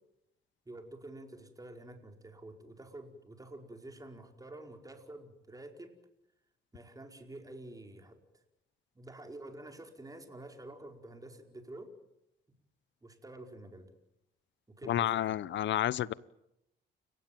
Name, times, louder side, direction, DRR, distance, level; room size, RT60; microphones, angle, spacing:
voice 1, 0.6-5.9 6.7-8.4 8.9-11.9 13.0-13.9 14.7-15.4, right 1 dB, 15° right, 4.8 m, -49 dB
voice 2, 14.9-16.1, left 12 dB, 70° left, 0.9 m, -30 dB
30.0 x 16.5 x 9.2 m
cardioid pair, 90°, 20 cm